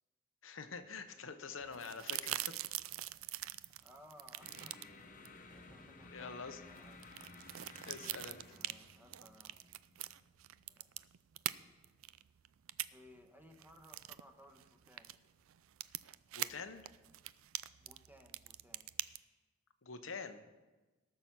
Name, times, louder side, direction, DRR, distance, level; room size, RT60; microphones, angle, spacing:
voice 1, 0.4-2.6 6.1-6.6 7.8-8.6 16.3-16.8 19.8-20.4, left 5 dB, 75° left, 8 dB, 0.9 m, -46 dB
voice 2, 1.1-1.6 3.7-4.8 5.5-7.0 8.5-9.6 10.7-10.9 12.9-15.1 17.8-18.9, equal, 10° right, 3 dB, 1.2 m, -61 dB
sound 1, 1.6-19.2, right 14 dB, 90° right, 0.4 m, -44 dB
sound 2, 4.4-10.8, left 3 dB, 40° left, 1.1 m, -56 dB
17.5 x 6.9 x 6.0 m, 1.2 s
head